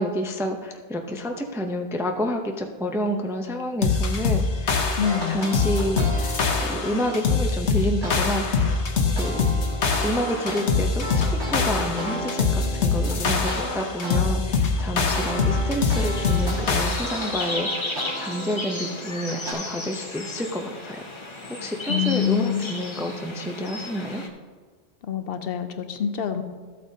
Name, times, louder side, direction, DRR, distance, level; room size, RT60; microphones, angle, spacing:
voice 1, 0.0-5.0 5.3-8.7 9.1-9.4 10.0-11.2 11.5-21.1 21.6-24.2, equal, 5° right, 3 dB, 0.4 m, -29 dB
sound 1, 3.8-17.4, left 4 dB, 85° left, 1.3 m, -24 dB
voice 2, 5.0-5.5 21.9-22.8 25.0-26.4, left 9 dB, 65° left, 9 dB, 0.8 m, -26 dB
sound 2, 5.0-7.4 8.0-8.2 8.6-14.2 14.6-19.5, right 1 dB, 85° right, 2.8 m, -34 dB
sound 3, 15.9-24.3, left 1 dB, 30° left, 0.9 m, -34 dB
13.0 x 8.4 x 2.7 m, 1.5 s
omnidirectional pair, 1.1 m